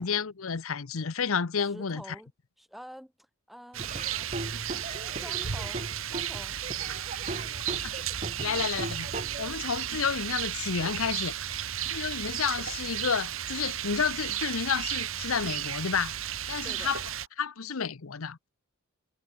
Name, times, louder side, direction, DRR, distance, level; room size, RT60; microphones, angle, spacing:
voice 1, 0.0-2.0 7.8-7.9 8.4-9.1 9.4-16.2 16.5-17.0 17.4-18.5, left 6 dB, 75° left, 0.8 m, -31 dB
voice 2, 1.6-2.3 2.6-4.7 5.2-6.6 8.4-8.7 16.6-17.0, equal, ahead, 5.6 m, -48 dB
Laughter / Drum, 3.7-9.7, right 2 dB, 35° right, 2.2 m, -39 dB
Rain, 3.7-17.3, right 10 dB, 70° right, 1.4 m, -34 dB
head